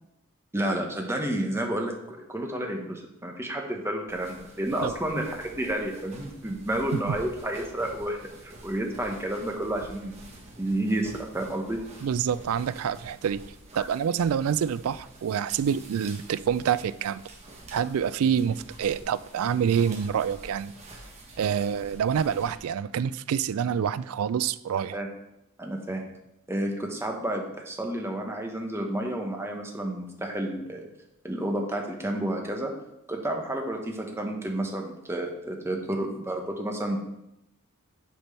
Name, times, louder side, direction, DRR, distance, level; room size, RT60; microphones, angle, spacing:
voice 1, 0.5-10.2 10.6-11.8 24.9-25.1 25.6-26.0 26.5-30.9 31.2-32.7 33.1-37.1, right 1 dB, 10° right, 1 dB, 1.1 m, -30 dB
sound 1, 4.1-22.6, right 1 dB, 30° right, 1.4 m, -48 dB
voice 2, 12.0-13.4 13.8-17.2 17.7-20.7 21.4-25.0, right 8 dB, 70° right, 17 dB, 0.3 m, -27 dB
8.3 x 4.5 x 5.6 m, 0.84 s
head